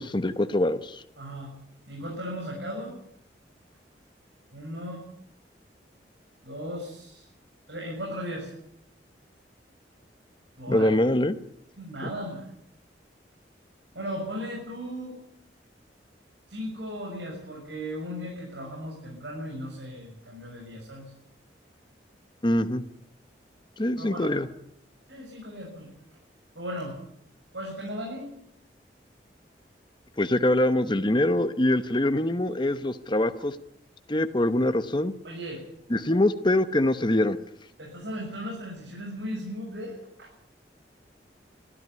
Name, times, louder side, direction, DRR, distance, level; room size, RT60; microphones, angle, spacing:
voice 1, 0.0-1.0 10.7-11.4 22.4-22.8 23.8-24.5 30.2-33.6 34.1-35.1 35.9-37.4, left 1 dB, 25° left, 10 dB, 1.0 m, -24 dB
voice 2, 1.2-1.5 1.9-2.9 4.5-5.1 6.4-7.2 7.7-8.5 10.6-10.9 11.8-12.5 13.9-15.2 16.5-21.1 24.0-24.3 25.1-25.9 26.6-27.0 27.5-28.3 35.2-35.6 37.8-40.3, equal, 85° right, -1 dB, 6.9 m, -36 dB
23.5 x 14.0 x 9.5 m, 0.73 s
head